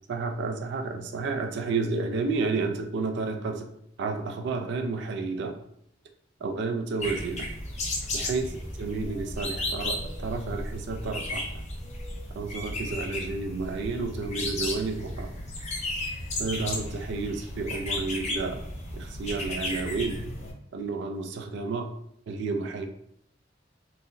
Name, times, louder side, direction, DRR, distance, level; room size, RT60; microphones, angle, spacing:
voice 1, 0.1-3.7 4.0-5.6 6.4-7.5 8.1-11.5 12.3-15.3 16.4-18.6 18.9-20.2 20.7-21.9 22.3-22.9, right 4 dB, 65° right, 6 dB, 0.3 m, -31 dB
sound 1, 7.0-20.5, left 1 dB, 40° left, 0.6 m, -34 dB
3.8 x 2.0 x 2.5 m, 0.72 s
head